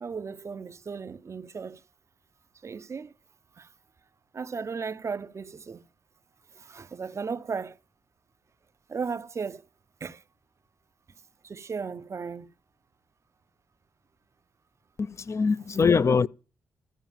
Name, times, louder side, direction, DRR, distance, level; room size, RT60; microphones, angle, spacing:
voice 1, 0.0-1.8 2.6-3.1 3.6-3.7 4.3-5.8 6.5-7.8 8.9-9.7 10.0-10.2 11.4-12.5, right 5 dB, 45° right, 0.6 m, -35 dB
voice 2, 15.0-16.3, left 5 dB, 45° left, 0.6 m, -23 dB
13.5 x 4.8 x 7.3 m
supercardioid pair, 45°, 7 cm